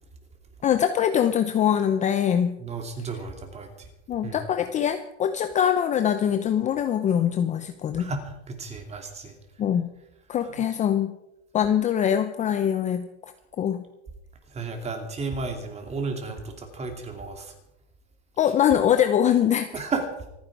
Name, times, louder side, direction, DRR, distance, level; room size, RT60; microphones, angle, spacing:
voice 1, 0.6-2.6 4.1-8.1 9.6-9.9 10.3-11.2 11.5-13.1 13.6-13.8 18.4-19.8, left 9 dB, 20° left, 9 dB, 0.7 m, -23 dB
voice 2, 2.6-3.9 4.2-4.4 8.0-8.2 8.5-9.3 10.5-10.6 14.5-17.5 19.7-20.1, right 4 dB, 20° right, 5 dB, 2.8 m, -33 dB
26.0 x 9.7 x 4.8 m, 0.86 s
supercardioid pair, 145°, 34 cm